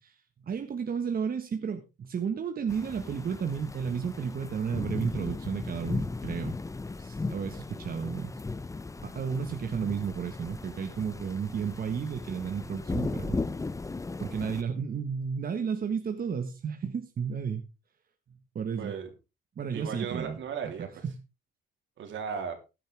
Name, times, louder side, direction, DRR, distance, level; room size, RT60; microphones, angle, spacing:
voice 1, 0.0-6.5 7.0-8.4 9.0-13.4 14.2-17.6 18.3-18.9 19.6-20.4 20.8-21.2, right 6 dB, 50° right, 6 dB, 1.4 m, -33 dB
sound 1, 2.7-14.6, left 3 dB, 15° left, 0.6 m, -37 dB
voice 2, 18.8-19.1 19.7-21.0 22.0-22.6, right 6 dB, 75° right, 5 dB, 3.3 m, -36 dB
15.5 x 10.0 x 3.5 m, 0.28 s
cardioid pair, 90°, 20 cm